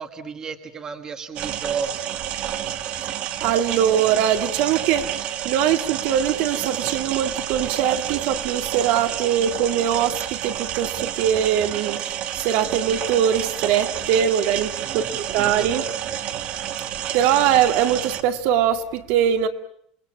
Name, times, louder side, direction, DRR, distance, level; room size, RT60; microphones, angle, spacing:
voice 1, 0.0-1.9 14.8-16.5, right 6 dB, 20° right, 1.6 m, -34 dB
sound 1, 1.4-18.2, right 11 dB, 45° right, 1.6 m, -29 dB
voice 2, 3.4-15.9 16.8-19.5, right 9 dB, 60° right, 2.0 m, -22 dB
28.5 x 20.5 x 7.5 m
cardioid pair, 170°, 3 cm